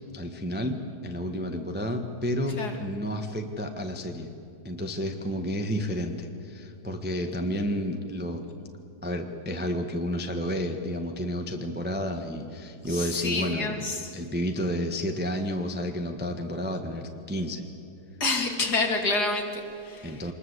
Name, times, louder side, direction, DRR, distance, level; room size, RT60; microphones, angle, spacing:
voice 1, 0.1-4.3 4.6-8.4 9.0-13.8 14.1-17.6 20.0-20.3, equal, 5° right, 4 dB, 1.0 m, -31 dB
voice 2, 12.9-14.1 18.2-20.2, left 3 dB, 50° left, 3 dB, 2.9 m, -28 dB
25.5 x 20.5 x 8.1 m, 2.7 s
omnidirectional pair, 2.3 m